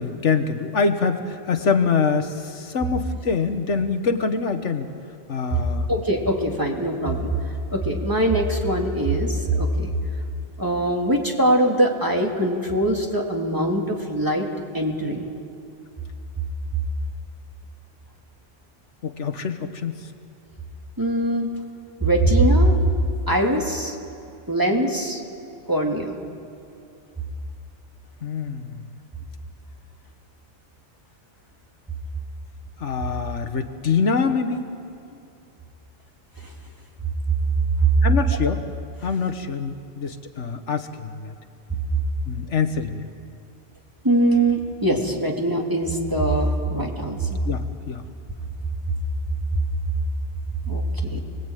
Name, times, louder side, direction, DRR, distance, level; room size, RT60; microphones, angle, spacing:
voice 1, 0.0-4.9 5.3-5.9 19.0-20.1 28.2-29.0 32.8-34.7 38.0-38.6 39.0-41.3 42.3-43.1 47.4-48.0, left 5 dB, 75° left, 8 dB, 1.6 m, -25 dB
voice 2, 5.9-7.3 7.7-9.9 10.6-14.5 14.7-15.2 21.0-21.5 22.0-22.8 23.3-24.0 24.5-25.2 25.7-26.2 44.0-47.4 50.7-51.2, right 1 dB, 15° right, 0 dB, 3.0 m, -22 dB
28.0 x 20.5 x 9.2 m, 2.6 s
omnidirectional pair, 1.2 m